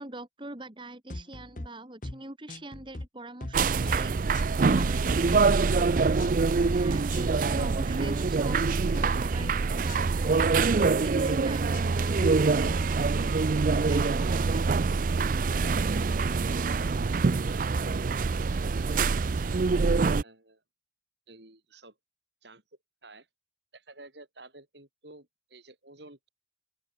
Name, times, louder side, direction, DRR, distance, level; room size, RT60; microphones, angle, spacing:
voice 1, 0.0-4.2 4.7-5.9 6.7-10.4 11.0-14.6, right 2 dB, 25° right, 1.9 m, -43 dB
sound 1, 1.1-1.7 2.0-2.2 2.5-3.1 3.4-3.6 3.9-5.0 5.3-5.8 6.2-6.4 6.6-7.2 7.6-7.7 8.0-8.6 8.9-9.1 9.4-10.0 10.3-10.5 10.8-11.4 11.7-12.8, left 1 dB, 45° left, 1.3 m, -39 dB
sound 2, 3.5-20.2, right 4 dB, 45° right, 0.4 m, -25 dB
voice 2, 16.7-19.6 20.2-20.6 21.3-22.0 22.4-22.6 23.0-23.3 23.7-26.3, right 2 dB, 70° right, 6.8 m, -51 dB
open air
head